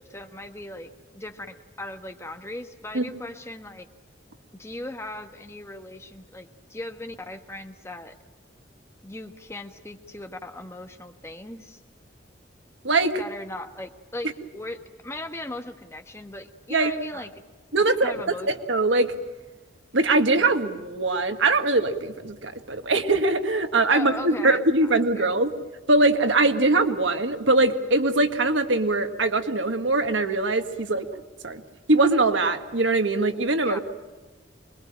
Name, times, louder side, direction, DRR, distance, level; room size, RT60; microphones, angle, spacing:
voice 1, 0.0-3.9 4.6-8.1 9.0-11.8 13.2-17.3 18.0-18.5 23.9-24.9 25.2-25.3 33.6-33.8, left 1 dB, 15° left, 6 dB, 1.3 m, -38 dB
voice 2, 12.8-13.2 16.7-16.9 17.7-19.1 19.9-25.5 25.9-31.1 31.4-31.6 31.9-33.8, right 2 dB, 85° right, 7 dB, 1.7 m, -22 dB
25.0 x 22.0 x 8.9 m, 1.3 s
head